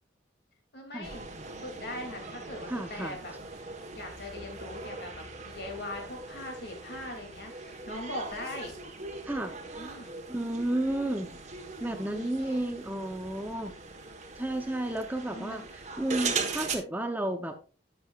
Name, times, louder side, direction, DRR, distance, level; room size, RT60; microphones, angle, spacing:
voice 1, 0.7-3.7 3.9-5.1 5.4-8.8 9.7-10.2 11.8-12.6 15.3-15.7, left 1 dB, 60° left, 2 dB, 2.6 m, -41 dB
sound 1, 1.0-16.7, right 4 dB, 40° right, 1.2 m, -40 dB
voice 2, 2.7-3.2 9.3-9.6 10.3-11.4 11.8-13.7 14.4-15.6 16.0-17.5, right 1 dB, 10° right, 6 dB, 0.7 m, -32 dB
10.5 x 7.5 x 2.4 m, 0.36 s
head